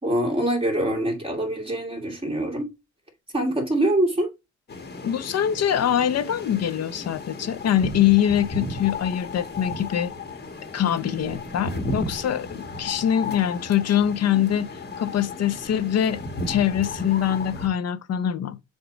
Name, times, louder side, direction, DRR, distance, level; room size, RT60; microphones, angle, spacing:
voice 1, 0.0-2.7 3.3-4.3, right 1 dB, 20° right, 2.5 m, -24 dB
sound 1, 4.7-17.7, left 2 dB, 35° left, 1.4 m, -34 dB
voice 2, 5.0-10.1 10.7-16.2 16.5-18.6, left 10 dB, 55° left, 0.8 m, -23 dB
7.0 x 2.6 x 5.1 m
cardioid pair, 90°, 30 cm